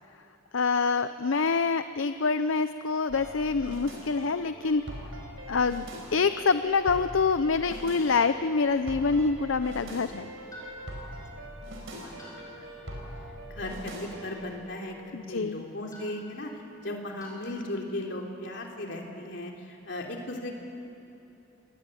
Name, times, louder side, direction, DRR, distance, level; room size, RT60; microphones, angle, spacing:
voice 1, 0.5-4.9 5.5-5.9 6.1-10.3 15.1-15.6, left 4 dB, 75° left, 11 dB, 0.6 m, -26 dB
sound 1, 3.1-14.4, right 1 dB, 80° right, 5.3 m, -42 dB
sound 2, 10.5-17.5, equal, 15° left, 7.0 m, -51 dB
voice 2, 11.0-11.5 12.0-12.1 12.5-12.9 13.5-20.6, left 1 dB, 60° left, 1 dB, 3.5 m, -37 dB
27.5 x 21.0 x 9.2 m, 2.9 s
head